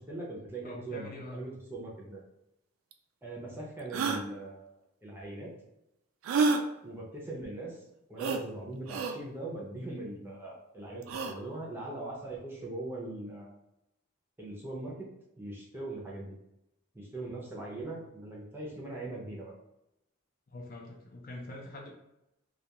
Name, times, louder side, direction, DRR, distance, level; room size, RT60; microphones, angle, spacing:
voice 1, 0.0-2.2 3.2-4.7 5.0-5.5 6.8-7.8 8.1-13.6 14.4-15.1 15.4-16.4 16.9-19.5, right 2 dB, 10° right, -4 dB, 0.5 m, -41 dB
voice 2, 0.6-1.4 20.5-21.9, left 1 dB, 45° left, -1 dB, 0.5 m, -44 dB
sound 1, 2.9-3.0 3.9-4.2 6.2-6.6 8.2-8.4 8.9-9.2 11.0-11.4, right 4 dB, 75° right, 0.3 m, -28 dB
2.3 x 2.3 x 2.8 m, 0.85 s
head